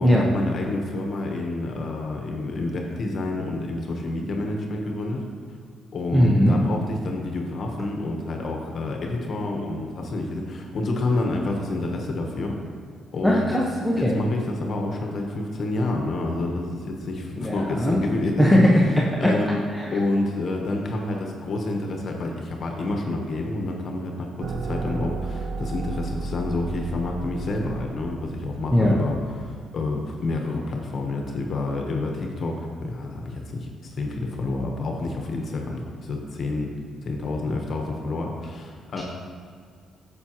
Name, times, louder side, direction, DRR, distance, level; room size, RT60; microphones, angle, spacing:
voice 1, 0.0-5.2 5.9-12.6 13.1-13.6 13.9-18.6 19.2-19.6 19.9-29.1 29.4-33.7 34.0-36.7 37.0-39.0, left 2 dB, 55° left, 1 dB, 1.1 m, -28 dB
voice 2, 6.1-6.6 13.2-14.2 17.4-18.0 18.4-18.9 19.7-19.9 28.7-29.0 39.0-39.1, equal, ahead, -4 dB, 0.9 m, -19 dB
sound 1, 24.4-29.6, right 4 dB, 65° right, 0.4 m, -34 dB
8.8 x 6.9 x 3.0 m, 2.1 s
cardioid pair, 90°, 0 cm